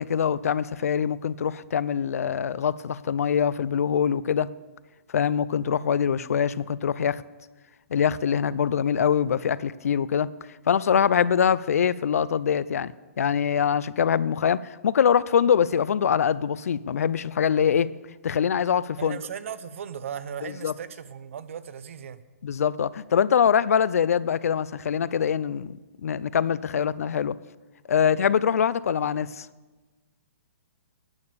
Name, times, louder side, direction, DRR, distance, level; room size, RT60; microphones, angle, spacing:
voice 1, 0.0-4.5 5.1-7.2 7.9-10.3 10.7-17.9 18.2-19.2 20.4-20.7 22.4-27.4 27.9-29.5, left 8 dB, 80° left, 19 dB, 0.4 m, -24 dB
voice 2, 19.0-22.2, right 8 dB, 60° right, 14 dB, 0.7 m, -37 dB
9.6 x 8.7 x 6.8 m, 1.3 s
hypercardioid pair, 160°, 8 cm